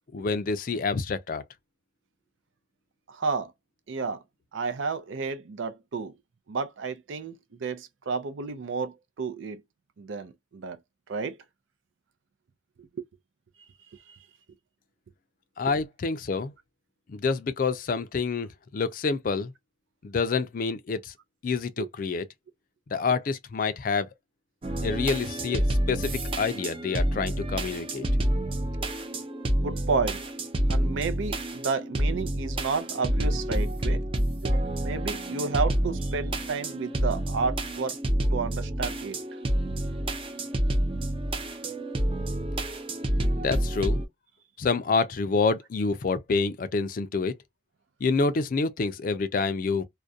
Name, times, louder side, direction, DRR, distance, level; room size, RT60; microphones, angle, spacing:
voice 1, 0.1-1.4 15.6-16.5 17.1-19.5 20.0-21.1 21.4-22.3 22.9-24.1 24.8-28.1 43.4-44.0 44.6-47.3 48.0-49.9, left 4 dB, 45° left, 0.3 m, -27 dB
voice 2, 3.1-3.5 3.9-4.2 4.5-6.1 6.5-9.6 10.0-10.8 11.1-11.4 12.8-12.9 13.9-14.2 21.8-21.9 29.6-30.2 30.7-34.0 34.5-38.0 38.3-39.2, right 4 dB, 90° right, 0.5 m, -31 dB
sound 1, 24.6-44.0, right 1 dB, 30° right, 0.4 m, -28 dB
2.4 x 2.1 x 2.5 m
head